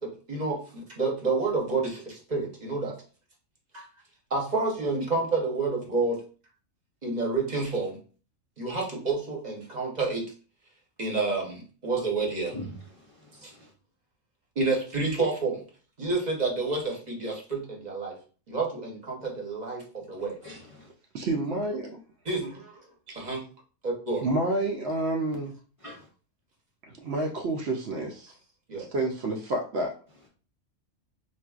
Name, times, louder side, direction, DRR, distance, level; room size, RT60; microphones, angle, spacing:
voice 1, 0.0-2.9 3.7-3.8 4.3-6.2 7.0-8.0 8.6-10.3 11.0-12.5 13.4-13.5 14.6-15.6 16.0-18.2 18.5-20.4 22.2-22.9 23.1-23.4 23.8-24.3 28.7-28.9, right 3 dB, 40° right, 0.9 m, -29 dB
voice 2, 12.5-13.7 20.4-20.9 25.8-26.1, left 1 dB, 40° left, 0.5 m, -43 dB
voice 3, 21.1-22.0 23.1-23.3 24.2-25.5 26.9-28.3 28.7-29.9, right 2 dB, 65° right, 0.8 m, -29 dB
4.0 x 2.5 x 2.3 m
omnidirectional pair, 1.3 m